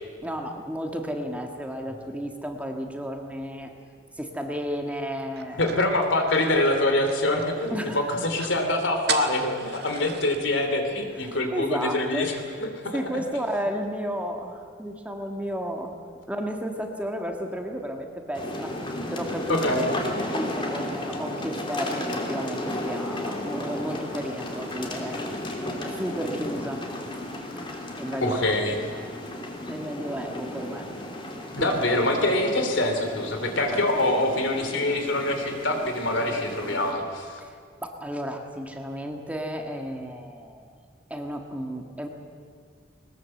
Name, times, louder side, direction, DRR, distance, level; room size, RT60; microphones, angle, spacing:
voice 1, 0.2-3.7 4.1-5.7 7.7-8.2 11.2-12.3 12.9-15.9 16.3-19.6 20.3-25.3 25.8-26.9 28.0-28.4 28.9-29.1 29.7-30.9 31.6-31.7 37.4-40.7 41.1-42.1, equal, 5° right, 3 dB, 1.7 m, -33 dB
sound 1, 5.4-7.7 8.0-8.1 8.3-8.6 9.1-10.4, right 7 dB, 55° right, 1.6 m, -35 dB
voice 2, 5.6-12.3 12.6-13.0 19.5-19.9 28.2-28.9 31.5-37.4, left 1 dB, 70° left, 5 dB, 3.2 m, -25 dB
sound 2, 18.3-36.9, left 1 dB, 25° left, 2.9 m, -34 dB
21.0 x 20.0 x 7.8 m, 2.1 s
head